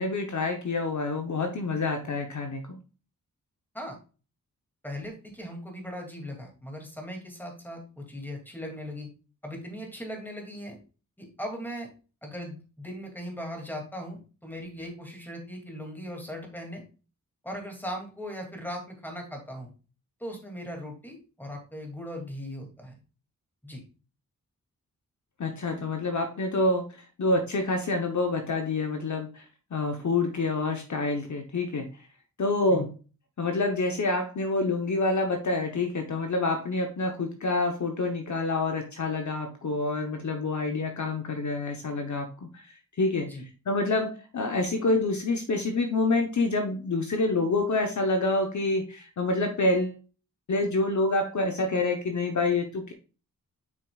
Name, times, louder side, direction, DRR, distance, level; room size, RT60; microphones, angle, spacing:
voice 1, 0.0-2.8 25.4-26.9 27.2-29.5 29.7-31.9 32.4-32.9 33.4-43.3 43.7-50.0 50.5-52.9, left 2 dB, 55° left, 5 dB, 0.9 m, -27 dB
voice 2, 4.8-9.1 9.4-10.8 11.2-11.9 12.2-16.8 17.4-19.7 20.2-23.0 23.6-23.8 32.7-32.9 43.2-43.5, equal, 5° left, 1 dB, 2.4 m, -38 dB
8.1 x 6.0 x 2.3 m, 0.35 s
wide cardioid pair, 100°, 35 cm